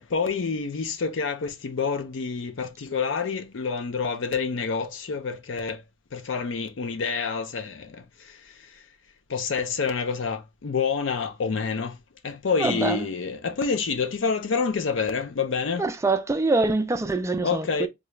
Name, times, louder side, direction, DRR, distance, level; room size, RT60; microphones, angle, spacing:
voice 1, 0.0-5.8 6.1-8.8 9.3-12.0 12.2-15.8 17.4-17.9, left 5 dB, 75° left, 0.5 m, -28 dB
voice 2, 12.6-13.1 15.8-17.9, right 3 dB, 15° right, 0.4 m, -24 dB
3.8 x 2.3 x 3.1 m
head